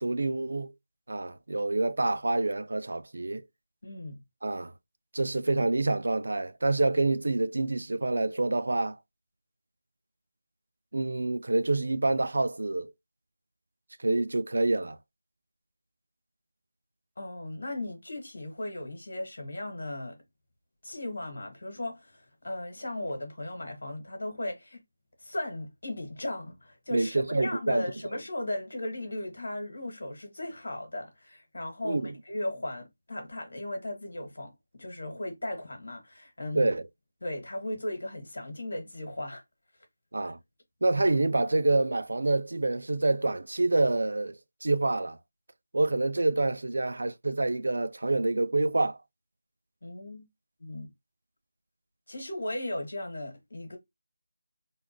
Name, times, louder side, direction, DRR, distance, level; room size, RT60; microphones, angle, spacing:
voice 1, 0.0-0.7 1.1-3.4 4.4-4.7 5.1-9.0 10.9-12.9 14.0-15.0 26.9-27.8 28.1-28.2 31.8-32.1 36.5-36.8 40.1-40.4 40.8-44.4 44.6-45.2 45.7-49.0, right 2 dB, 60° right, 0.4 m, -27 dB
voice 2, 3.8-4.2 17.2-20.2 20.8-24.8 25.2-36.7 37.2-39.4 40.2-40.3 49.8-50.3 50.6-50.9 52.1-53.8, left 1 dB, 65° left, 2.0 m, -36 dB
4.0 x 2.5 x 3.0 m
figure-of-eight pair, 180°, 0 cm